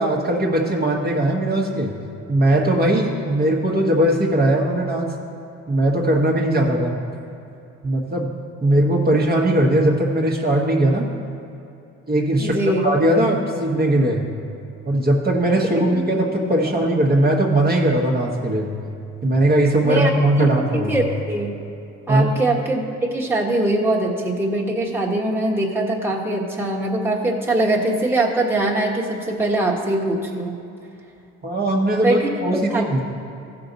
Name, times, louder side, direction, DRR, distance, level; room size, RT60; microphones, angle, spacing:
voice 1, 0.0-1.9 2.3-5.1 5.7-7.0 7.8-8.3 8.6-11.1 12.1-14.3 14.8-18.7 19.2-21.0 22.1-22.3 31.4-33.0, right 1 dB, 30° right, -2 dB, 1.2 m, -19 dB
voice 2, 12.4-12.8 19.8-20.1 20.4-21.5 22.1-30.5 32.0-33.0, right 1 dB, 10° right, -3 dB, 1.4 m, -22 dB
15.0 x 5.9 x 4.0 m, 2.7 s
cardioid pair, 90°, 30 cm